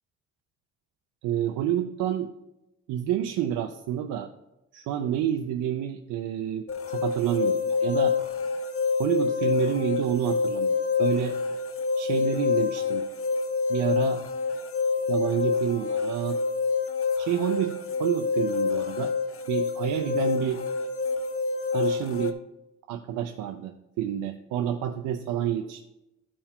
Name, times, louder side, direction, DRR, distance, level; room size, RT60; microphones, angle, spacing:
voice 1, 1.2-2.3 2.9-4.3 4.7-8.2 9.0-11.4 12.0-13.1 13.7-14.2 15.1-16.4 17.2-19.1 19.5-20.6 21.7-22.4 22.9-25.8, right 10 dB, 90° right, 5 dB, 0.6 m, -29 dB
sound 1, 6.7-22.3, left 5 dB, 45° left, 0.8 m, -27 dB
12.0 x 4.9 x 3.6 m, 0.92 s
cardioid pair, 90°, 30 cm